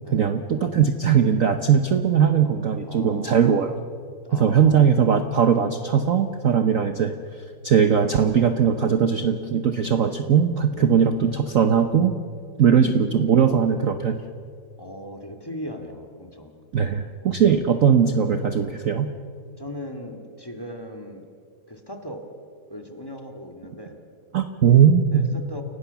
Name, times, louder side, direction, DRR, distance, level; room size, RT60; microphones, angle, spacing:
voice 1, 0.1-3.7 4.3-7.1 7.6-12.1 12.6-14.2 16.7-19.1 24.3-25.3, right 7 dB, 50° right, 8 dB, 1.1 m, -19 dB
voice 2, 2.9-3.5 4.2-5.0 10.7-11.0 12.6-13.2 14.8-16.5 19.6-21.3 21.7-22.2 22.7-24.0 25.1-25.6, left 1 dB, 10° left, 5 dB, 2.0 m, -38 dB
29.5 x 17.5 x 7.0 m, 2.3 s
omnidirectional pair, 2.2 m